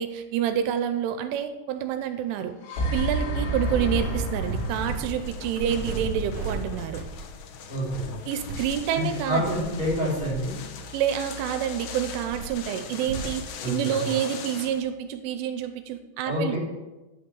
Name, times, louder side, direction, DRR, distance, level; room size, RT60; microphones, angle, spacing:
voice 1, 0.0-2.5 2.9-7.0 8.3-9.6 10.9-16.6, right 9 dB, 85° right, 9 dB, 3.1 m, -28 dB
sound 1, 2.6-6.6, right 1 dB, 65° left, 4.6 m, -30 dB
sound 2, 3.6-5.0 5.2-6.6 7.0-7.2 7.7-8.0 8.4-9.9 10.2-13.3, right 3 dB, 45° right, 2.2 m, -36 dB
sound 3, 4.4-14.8, left 7 dB, 80° left, 1.9 m, -41 dB
voice 2, 7.7-8.1 8.9-10.5 13.6-14.1 16.2-16.6, equal, 20° left, -6 dB, 4.8 m, -28 dB
11.0 x 6.3 x 7.0 m, 1.1 s
omnidirectional pair, 5.5 m